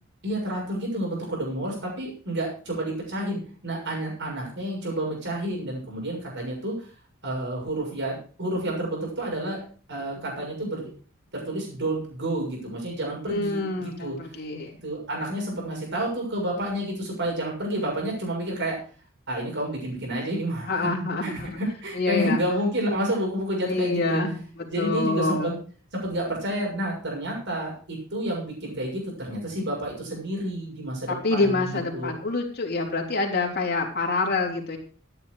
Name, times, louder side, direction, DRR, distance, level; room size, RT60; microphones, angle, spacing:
voice 1, 0.2-6.9 7.2-10.9 11.3-14.2 14.8-18.8 19.3-20.9 21.2-24.2 24.7-25.5 25.9-31.7 31.9-32.1, right 1 dB, 60° right, -2 dB, 6.9 m, -30 dB
voice 2, 13.3-14.7 20.7-21.6 21.9-22.4 23.7-25.5 31.1-34.8, left 3 dB, 50° left, 1 dB, 3.5 m, -26 dB
13.5 x 10.5 x 4.9 m, 0.41 s
head